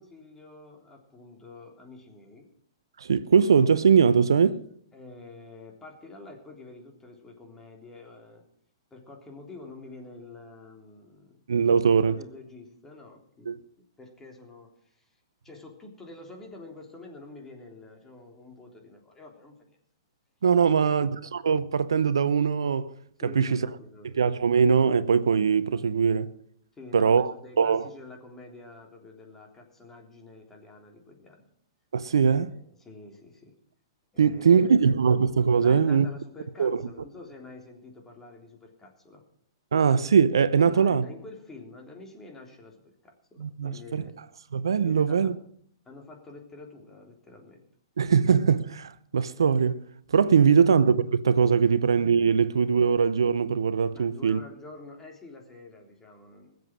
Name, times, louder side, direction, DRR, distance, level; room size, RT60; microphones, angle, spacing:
voice 1, 0.0-2.5 4.9-8.4 8.9-11.4 11.8-19.8 20.6-21.1 23.2-24.2 26.8-31.4 32.2-33.6 34.1-34.8 35.6-39.2 40.6-44.2 44.8-45.4 45.9-47.6 50.5-50.6 51.7-51.8 53.9-56.6, left 2 dB, 15° left, 3.5 m, -47 dB
voice 2, 3.0-4.6 11.5-12.2 13.5-13.6 20.4-22.9 23.4-23.6 24.2-26.3 26.9-27.9 31.9-32.5 34.2-36.1 36.6-36.7 39.7-41.0 43.4-44.0 44.5-45.3 48.0-49.8 50.1-54.4, right 6 dB, 80° right, 0.7 m, -21 dB
20.0 x 7.8 x 6.3 m
hypercardioid pair, 120°, 2 cm